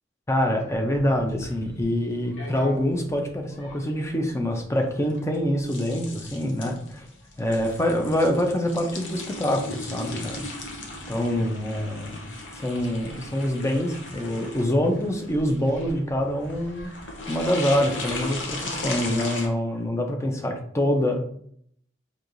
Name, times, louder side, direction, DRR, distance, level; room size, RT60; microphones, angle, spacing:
voice 1, 0.3-7.1 7.4-10.5 11.1-12.3 12.5-16.9 17.3-21.2, equal, 15° left, 3 dB, 0.5 m, -25 dB
sound 1, 0.7-19.5, left 2 dB, 75° left, 0.7 m, -37 dB
4.5 x 2.6 x 2.5 m, 0.65 s
head